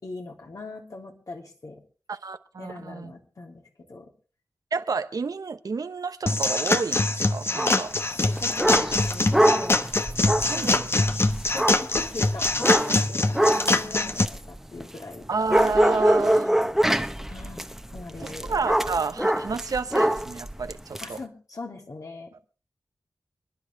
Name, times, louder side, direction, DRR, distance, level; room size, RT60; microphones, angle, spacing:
voice 1, 0.0-1.8 2.6-4.1 7.5-7.7 8.1-9.8 10.5-10.8 11.5-15.3 17.3-18.6 21.0-22.3, left 3 dB, 70° left, 1 dB, 3.3 m, -40 dB
voice 2, 2.1-3.1 4.7-7.9 10.4-10.8 15.3-16.6 18.2-21.2, right 4 dB, 80° right, 10 dB, 1.0 m, -30 dB
sound 1, 6.3-14.2, left 2 dB, 40° left, 1.1 m, -24 dB
sound 2, 7.5-7.8 8.2-15.2 15.5-21.1, right 1 dB, 5° right, 1.2 m, -25 dB
27.5 x 10.5 x 3.5 m, 0.36 s
cardioid pair, 50°, 6 cm